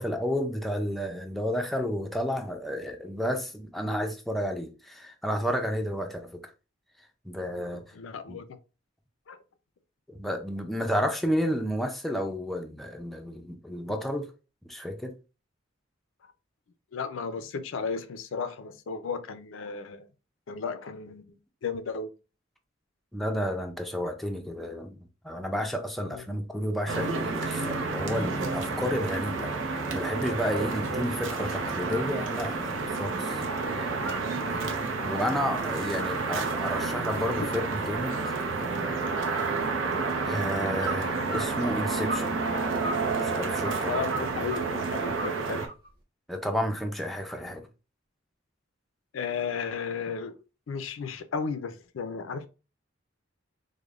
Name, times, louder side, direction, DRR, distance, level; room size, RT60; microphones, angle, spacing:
voice 1, 0.0-6.4 7.2-7.8 8.3-8.4 10.1-14.3 14.6-15.1 23.1-25.0 25.2-29.5 29.9-32.7 33.0-33.4 33.7-33.9 34.4-38.3 40.2-42.3 43.2-44.0 46.3-47.7, equal, ahead, 0.4 m, -31 dB
voice 2, 7.9-8.5 9.3-9.4 16.9-20.1 20.5-22.1 26.1-26.2 34.0-34.2 35.0-35.1 43.9-45.7 49.1-50.3 50.7-52.5, left 5 dB, 85° left, 0.4 m, -34 dB
sound 1, 26.9-45.7, right 4 dB, 80° right, 0.6 m, -30 dB
sound 2, 31.9-32.1 32.4-33.4 33.7-34.6 35.0-37.8 38.2-38.7 39.0-40.0 40.8-42.3 42.6-44.7 45.1-45.9, right 2 dB, 55° right, 1.3 m, -39 dB
4.9 x 2.1 x 2.4 m
head